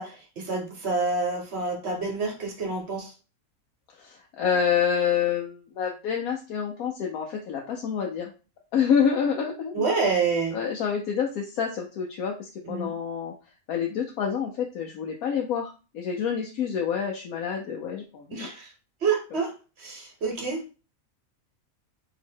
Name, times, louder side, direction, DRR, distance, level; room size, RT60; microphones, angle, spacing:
voice 1, 0.0-3.1 9.7-10.6 12.6-12.9 18.3-18.7 19.0-20.6, right 4 dB, 50° right, 2 dB, 1.4 m, -28 dB
voice 2, 4.0-8.3 8.7-9.7 10.5-13.3 13.7-18.5, left 7 dB, 75° left, 0 dB, 1.1 m, -27 dB
3.0 x 2.9 x 4.4 m, 0.33 s
omnidirectional pair, 1.5 m